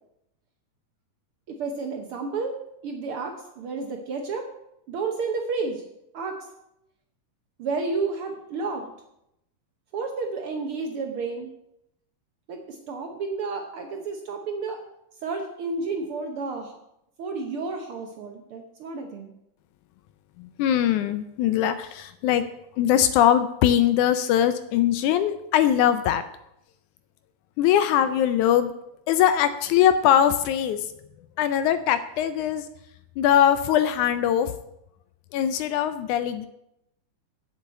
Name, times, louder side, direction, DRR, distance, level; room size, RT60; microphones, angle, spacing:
voice 1, 1.5-2.5 2.8-4.5 4.9-5.8 6.1-6.5 7.6-8.9 9.9-11.5 12.5-14.8 15.2-16.7 17.2-19.3, right 4 dB, 70° right, 4 dB, 1.3 m, -31 dB
voice 2, 20.4-22.5 22.8-26.2 27.6-28.7 29.1-30.9 31.4-32.7 33.2-34.5 35.3-36.5, left 10 dB, 80° left, 12 dB, 1.9 m, -21 dB
7.9 x 7.2 x 8.0 m, 0.81 s
omnidirectional pair, 3.7 m